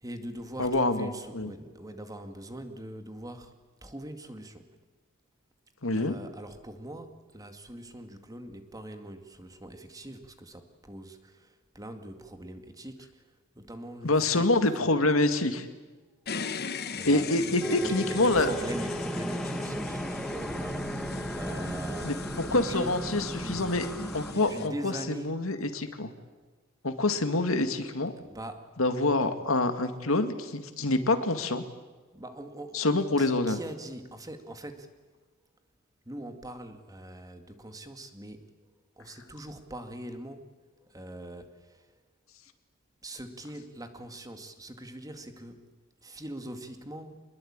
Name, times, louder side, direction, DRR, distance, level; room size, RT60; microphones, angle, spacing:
voice 1, 0.0-3.5 3.8-4.6 5.9-13.2 13.6-14.5 17.0-22.2 22.5-23.7 24.3-25.3 28.2-28.7 32.1-32.8 33.2-34.9 36.1-38.5 39.0-40.5 40.9-41.9 43.0-45.7 46.0-47.2, right 1 dB, 15° right, 7 dB, 2.1 m, -42 dB
voice 2, 0.6-1.5 5.8-6.1 14.0-15.7 17.0-18.5 22.0-23.9 24.1-26.1 26.8-28.1 28.8-31.6 32.7-33.6, left 2 dB, 75° left, 8 dB, 2.1 m, -26 dB
sound 1, 16.3-24.7, left 5 dB, 50° left, 1.2 m, -40 dB
sound 2, 16.8-24.3, equal, 5° left, 1.6 m, -36 dB
26.0 x 21.0 x 8.8 m, 1.3 s
head